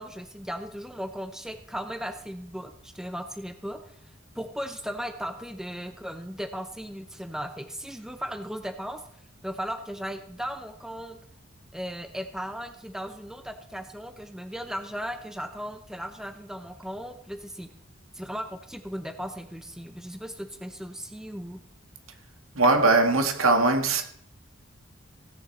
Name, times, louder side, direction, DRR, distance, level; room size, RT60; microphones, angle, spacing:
voice 1, 0.0-3.9 4.3-9.0 9.4-11.2 11.7-17.7 18.1-21.6, equal, ahead, 0.7 m, -36 dB
voice 2, 22.6-24.0, right 3 dB, 80° right, 1.7 m, -20 dB
16.5 x 9.8 x 4.2 m
head